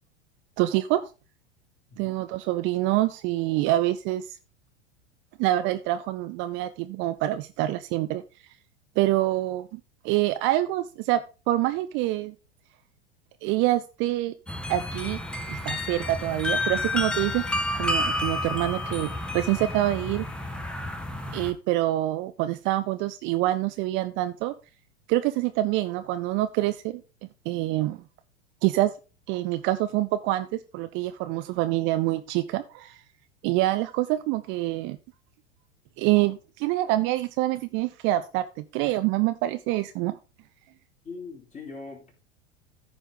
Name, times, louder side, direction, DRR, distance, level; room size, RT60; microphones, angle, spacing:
voice 1, 0.6-1.1 2.0-4.3 5.4-8.2 9.0-9.8 10.0-11.2 11.5-12.3 13.4-14.3 14.7-15.2 15.5-17.5 17.8-20.3 21.3-24.5 25.1-27.0 27.5-28.0 28.6-28.9 29.3-33.0 33.4-35.0 36.0-40.2, right 16 dB, 40° right, 11 dB, 0.6 m, -26 dB
sound 1, 14.5-21.5, left 2 dB, 5° left, 1.1 m, -30 dB
voice 2, 41.0-42.3, left 4 dB, 20° left, 0 dB, 3.8 m, -41 dB
14.5 x 5.0 x 3.8 m, 0.32 s
figure-of-eight pair, 85°, 32 cm